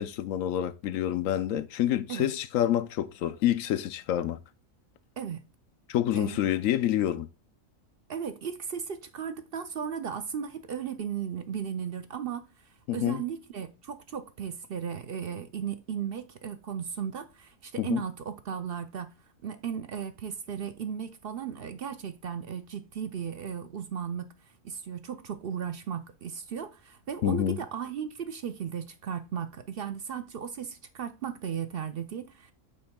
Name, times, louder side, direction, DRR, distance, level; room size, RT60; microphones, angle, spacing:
voice 1, 0.0-4.4 5.9-7.3 12.9-13.2 17.8-18.0 27.2-27.6, left 11 dB, 85° left, 1.0 m, -27 dB
voice 2, 8.1-12.5 12.9-19.1 19.4-24.3 24.6-32.5, right 8 dB, 55° right, 0.7 m, -36 dB
8.7 x 7.5 x 2.3 m
omnidirectional pair, 1.4 m